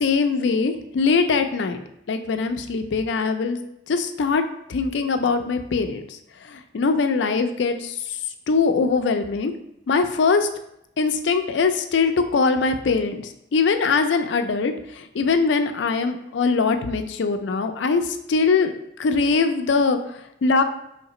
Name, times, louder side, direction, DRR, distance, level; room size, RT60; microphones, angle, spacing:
voice 1, 0.0-1.8 2.1-3.6 3.9-4.4 4.7-6.2 6.4-8.2 8.5-9.5 9.9-10.5 11.0-20.6, left 4 dB, 70° left, 7 dB, 0.4 m, -22 dB
3.2 x 2.8 x 4.1 m, 0.78 s
head